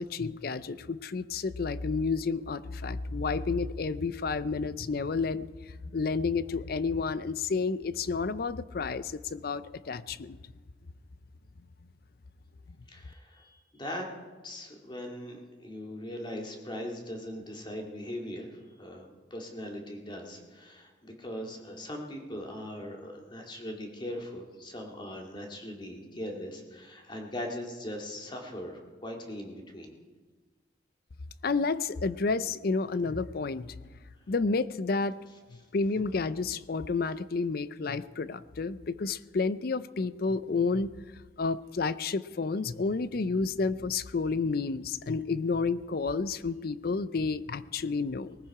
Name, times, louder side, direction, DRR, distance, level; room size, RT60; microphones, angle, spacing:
voice 1, 0.0-5.5 5.8-10.4 31.4-33.7 34.3-35.2 35.7-40.9 41.4-48.4, left 4 dB, 55° left, 16 dB, 0.5 m, -30 dB
voice 2, 12.9-14.1 14.4-15.4 15.6-29.9, left 1 dB, 25° left, 1 dB, 2.2 m, -40 dB
20.0 x 14.5 x 4.8 m, 1.4 s
head